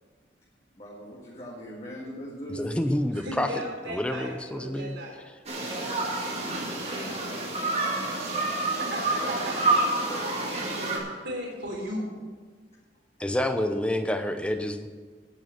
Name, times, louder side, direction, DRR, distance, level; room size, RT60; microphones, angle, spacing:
voice 1, 0.8-2.8 6.4-8.7, equal, 35° left, -5 dB, 1.8 m, -42 dB
voice 2, 2.5-3.5 3.9-4.9 13.2-14.9, left 1 dB, 5° left, 7 dB, 0.6 m, -28 dB
voice 3, 3.1-5.2 8.7-12.1, right 1 dB, 70° right, -2 dB, 3.6 m, -37 dB
sound 1, 5.5-11.0, right 2 dB, 35° right, 1.9 m, -28 dB
9.7 x 8.4 x 6.5 m, 1.5 s
head